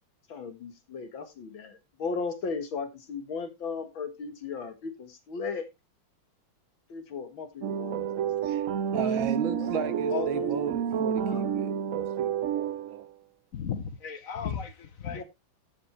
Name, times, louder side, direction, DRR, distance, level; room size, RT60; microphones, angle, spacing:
voice 1, 0.3-5.7 6.9-8.0 9.0-9.2 9.5-10.5 11.2-11.4 15.1-15.2, left 5 dB, 75° left, 2.5 m, -36 dB
sound 1, 7.6-13.0, right 8 dB, 60° right, 0.8 m, -29 dB
voice 2, 8.4-13.1, right 9 dB, 75° right, 1.7 m, -36 dB
voice 3, 13.5-15.2, left 7 dB, 50° left, 1.2 m, -35 dB
13.0 x 7.5 x 3.4 m
omnidirectional pair, 2.2 m